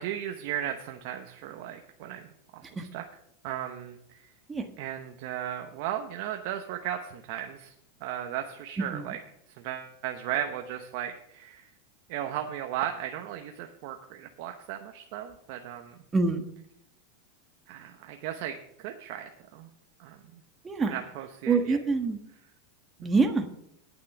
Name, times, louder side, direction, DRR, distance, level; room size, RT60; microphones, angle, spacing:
voice 1, 0.0-3.0 3.4-4.0 4.8-7.7 8.0-9.2 9.6-11.7 12.1-15.9 17.7-19.7 20.0-20.2 20.8-21.8, right 11 dB, 60° right, 5 dB, 0.9 m, -36 dB
voice 2, 16.1-16.4 20.6-20.9 21.5-22.2 23.0-23.5, right 4 dB, 15° right, 6 dB, 1.4 m, -26 dB
9.3 x 8.4 x 6.0 m, 0.75 s
supercardioid pair, 130°, 0 cm